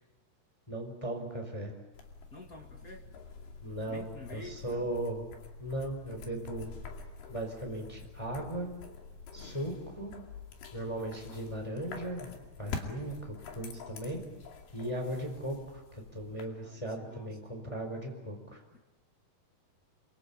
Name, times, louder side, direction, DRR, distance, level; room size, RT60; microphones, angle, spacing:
voice 1, 0.7-1.7 3.6-4.1 4.3-5.3 5.6-6.7 7.3-8.7 9.3-10.1 10.7-12.3 12.6-14.2 14.7-18.6, right 1 dB, 5° left, 3 dB, 4.0 m, -37 dB
sound 1, 1.9-16.5, left 5 dB, 70° left, 4.3 m, -47 dB
voice 2, 2.3-3.1 3.9-4.9 12.6-13.1 16.5-17.4 18.7-18.8, left 2 dB, 35° left, 3 dB, 1.5 m, -49 dB
28.5 x 23.5 x 8.6 m, 1.1 s
omnidirectional pair, 5.0 m